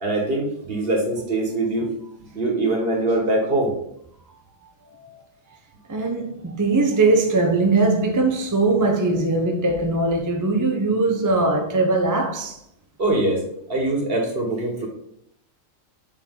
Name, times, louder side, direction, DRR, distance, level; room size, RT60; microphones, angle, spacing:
voice 1, 0.0-1.9 2.3-3.7 13.0-13.4 13.7-14.9, right 2 dB, 45° right, 1.7 m, -23 dB
voice 2, 5.9-12.6, right 3 dB, 25° right, 0.5 m, -20 dB
7.1 x 4.4 x 3.7 m
omnidirectional pair, 1.3 m